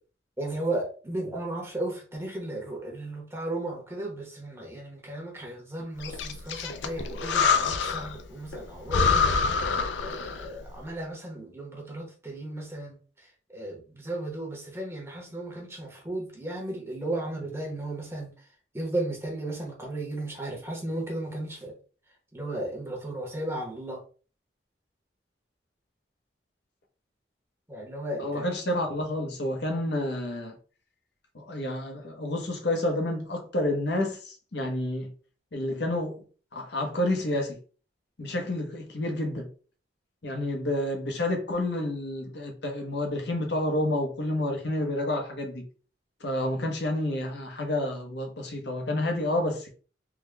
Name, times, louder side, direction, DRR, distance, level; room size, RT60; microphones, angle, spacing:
voice 1, 0.4-9.2 10.0-13.0 13.5-18.3 18.7-21.7 22.3-24.0 27.7-28.4, right 1 dB, 15° right, 0.9 m, -35 dB
Breathing, 6.0-8.2 8.5-8.6 8.9-10.6, left 5 dB, 85° left, 0.5 m, -26 dB
voice 2, 28.2-30.6 31.3-35.1 35.5-36.2 36.5-37.6 38.2-39.5 40.2-45.7 46.2-49.7, left 1 dB, 70° left, 0.9 m, -29 dB
3.6 x 2.2 x 3.2 m
head